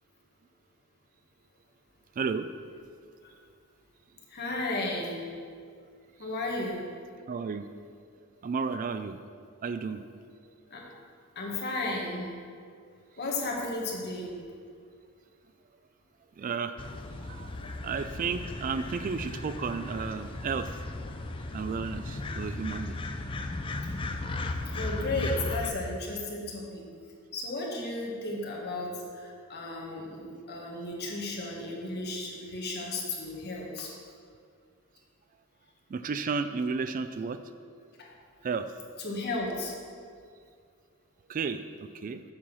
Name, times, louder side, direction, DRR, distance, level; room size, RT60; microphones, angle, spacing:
voice 1, 2.2-2.5 7.3-7.7 8.4-9.2 9.6-10.0 16.4-16.8 17.2-17.5 17.8-20.7 21.5-23.0 35.9-37.4 38.4-38.7 41.3-42.2, right 5 dB, 40° right, 10 dB, 0.3 m, -32 dB
voice 2, 4.3-5.3 6.2-6.8 10.7-10.8 11.3-12.3 13.2-14.3 17.5-17.7 21.5-21.6 24.6-26.9 27.3-33.9 38.0-38.1 39.0-39.8, left 2 dB, 50° left, -2 dB, 1.6 m, -34 dB
sound 1, 16.8-25.7, left 2 dB, 25° left, 0.5 m, -36 dB
7.4 x 5.7 x 6.2 m, 2.2 s
head